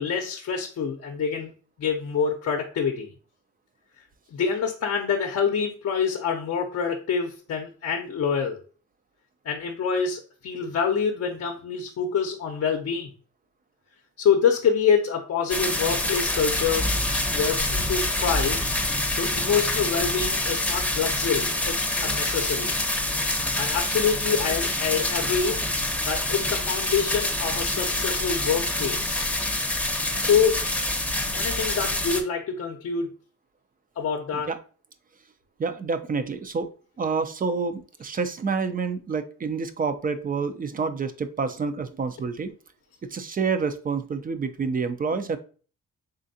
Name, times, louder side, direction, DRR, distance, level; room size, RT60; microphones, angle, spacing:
voice 1, 0.0-1.5 1.8-3.1 4.3-8.6 9.4-13.1 14.2-16.9 17.3-18.6 19.1-22.7 23.6-25.6 26.1-29.3 30.2-30.6 31.3-33.1 34.0-34.5, left 6 dB, 55° left, 2 dB, 0.7 m, -26 dB
sound 1, 15.5-32.2, left 1 dB, 5° left, 0.7 m, -26 dB
voice 2, 35.6-36.7 37.0-42.5 43.1-45.4, right 5 dB, 30° right, 10 dB, 0.4 m, -28 dB
3.8 x 3.3 x 2.7 m, 0.38 s
cardioid pair, 90°, 30 cm